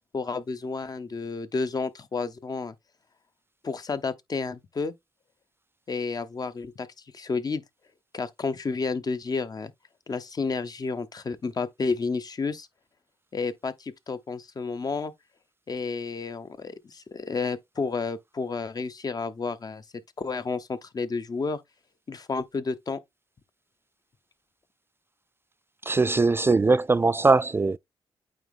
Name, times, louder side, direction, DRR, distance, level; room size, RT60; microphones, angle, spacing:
voice 1, 0.1-2.7 3.6-4.9 5.9-6.9 7.1-7.6 8.1-9.7 10.1-12.7 13.3-15.1 15.7-19.8 20.2-21.6 22.1-23.0, left 4 dB, 40° left, 0.9 m, -31 dB
voice 2, 25.9-27.8, right 3 dB, 25° right, 0.3 m, -21 dB
8.8 x 3.0 x 3.5 m
cardioid pair, 65°, 10 cm